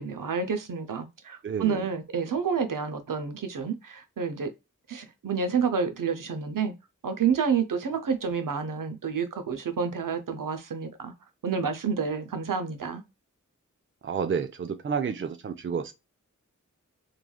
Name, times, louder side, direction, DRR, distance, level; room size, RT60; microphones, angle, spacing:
voice 1, 0.0-4.5 4.9-6.7 7.0-11.1 11.4-13.0, right 6 dB, 80° right, 0.6 m, -29 dB
voice 2, 1.4-1.8 14.0-15.9, right 6 dB, 40° right, 0.4 m, -30 dB
3.1 x 2.3 x 2.2 m
wide cardioid pair, 65°, 32 cm